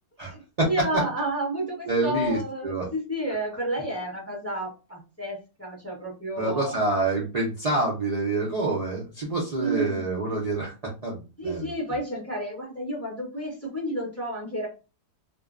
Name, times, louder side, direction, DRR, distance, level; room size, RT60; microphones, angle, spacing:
voice 1, 0.3-6.7 9.5-10.1 11.4-14.7, right 1 dB, 15° left, -3 dB, 0.5 m, -31 dB
voice 2, 1.9-2.9 6.4-10.7 11.0-11.2 11.4-11.6, right 2 dB, 70° right, -4 dB, 0.3 m, -26 dB
2.5 x 2.2 x 2.3 m, 0.30 s
omnidirectional pair, 1.6 m